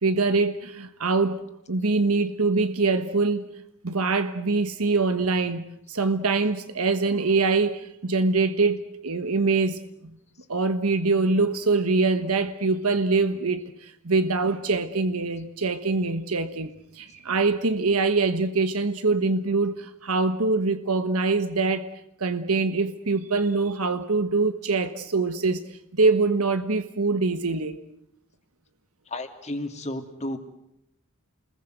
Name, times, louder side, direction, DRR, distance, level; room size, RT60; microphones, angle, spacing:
voice 1, 0.0-3.5 3.8-9.8 10.5-21.9 22.2-25.7 25.9-27.8, right 3 dB, 85° right, 9 dB, 1.3 m, -24 dB
voice 2, 29.1-30.4, left 1 dB, 30° left, 6 dB, 2.8 m, -32 dB
29.0 x 21.5 x 8.0 m, 0.78 s
head